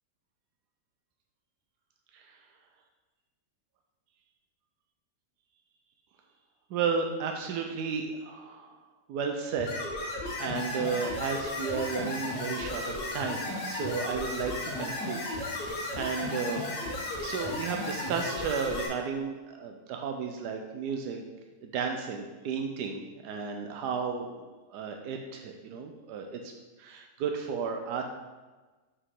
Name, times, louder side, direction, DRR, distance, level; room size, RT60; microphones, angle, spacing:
voice 1, 6.7-8.7 9.1-9.8 10.4-16.6 17.2-21.2 21.6-24.4 24.7-26.5 26.8-28.0, right 5 dB, 90° right, 3 dB, 1.2 m, -33 dB
sound 1, 9.6-18.9, left 2 dB, 75° left, 1.8 m, -34 dB
6.7 x 4.8 x 3.7 m, 1.2 s
omnidirectional pair, 1.7 m